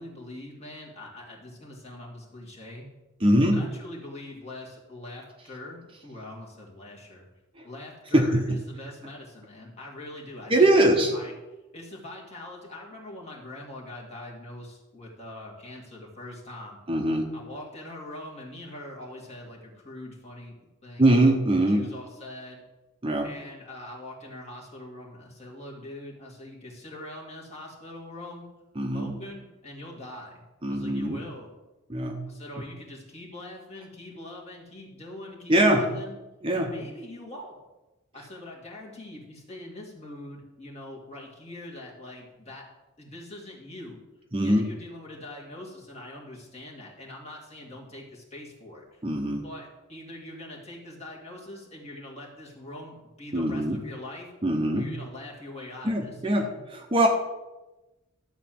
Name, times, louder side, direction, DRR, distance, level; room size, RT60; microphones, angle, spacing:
voice 1, 0.0-2.9 3.5-7.3 7.6-10.8 11.1-11.3 11.7-16.8 17.3-20.6 20.8-21.1 21.7-22.6 23.2-28.5 28.9-31.5 32.2-36.2 36.5-37.6 38.1-42.7 43.0-44.0 44.4-49.0 49.4-54.3 54.7-56.4, left 1 dB, 30° left, -2 dB, 2.2 m, -43 dB
voice 2, 3.2-3.6 7.6-7.7 8.1-8.6 10.5-11.1 16.9-17.3 21.0-21.8 23.0-23.3 28.8-29.2 30.6-31.2 31.9-32.2 35.5-35.9 36.4-36.7 44.3-44.7 49.0-49.5 53.3-53.8 54.4-54.9 55.8-57.1, right 1 dB, 25° right, 2 dB, 0.8 m, -22 dB
12.0 x 4.0 x 7.7 m, 1.1 s
head